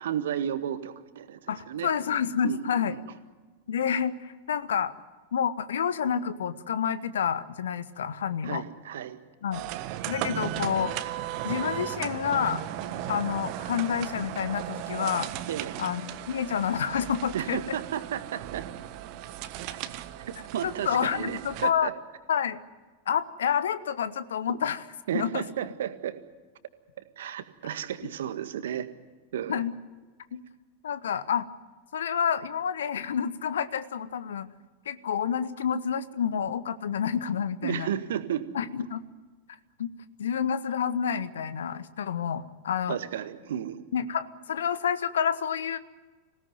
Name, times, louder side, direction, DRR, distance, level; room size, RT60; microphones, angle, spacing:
voice 1, 0.0-1.9 2.4-2.6 8.4-9.2 15.5-15.8 17.3-18.7 20.5-21.9 25.1-26.2 27.2-28.9 29.3-29.6 37.6-38.4 42.9-43.8, right 10 dB, 60° right, 10 dB, 1.7 m, -33 dB
voice 2, 1.5-2.9 3.7-4.9 5.3-8.6 9.4-9.6 10.1-10.9 11.4-12.6 13.1-15.3 15.8-17.8 20.6-21.9 22.3-22.6 23.1-24.8 25.1-25.4 29.5-29.7 30.3-30.4 30.8-31.5 31.9-34.5 34.8-37.9 38.5-39.0 39.8-39.9 40.2-43.0 43.9-45.8, left 8 dB, 65° left, 14 dB, 1.2 m, -29 dB
sound 1, 9.5-21.7, right 12 dB, 45° right, 1.4 m, -36 dB
26.0 x 17.5 x 9.3 m, 1.3 s
figure-of-eight pair, 90°, 0 cm